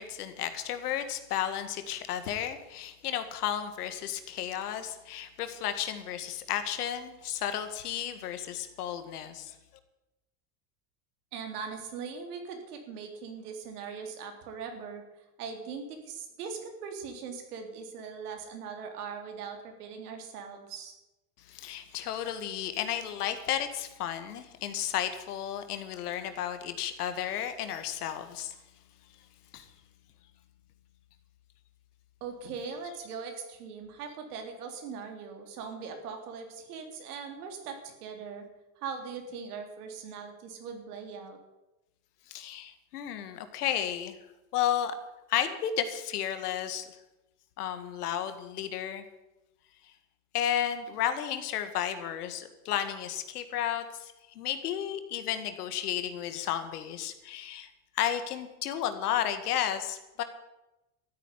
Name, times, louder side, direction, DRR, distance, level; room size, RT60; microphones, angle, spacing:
voice 1, 0.0-9.6 21.5-28.6 29.5-29.7 42.3-44.2 44.5-44.9 45.3-46.9 47.6-49.0 50.3-57.7 58.0-60.2, left 10 dB, 85° left, 9 dB, 2.0 m, -33 dB
voice 2, 11.3-15.0 15.4-20.9 32.2-38.5 38.8-41.4, right 5 dB, 85° right, 4 dB, 3.7 m, -40 dB
13.5 x 9.3 x 9.9 m, 0.99 s
supercardioid pair, 105°, 44 cm